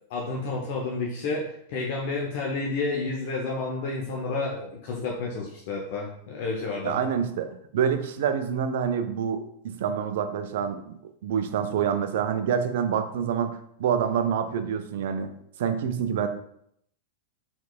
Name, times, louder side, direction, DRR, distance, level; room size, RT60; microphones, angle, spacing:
voice 1, 0.1-7.0, left 3 dB, 50° left, -2 dB, 0.6 m, -30 dB
voice 2, 6.8-10.9 11.2-15.3 15.6-16.3, right 7 dB, 55° right, 9 dB, 0.4 m, -27 dB
4.4 x 3.7 x 2.3 m, 0.71 s
figure-of-eight pair, 90°, 0 cm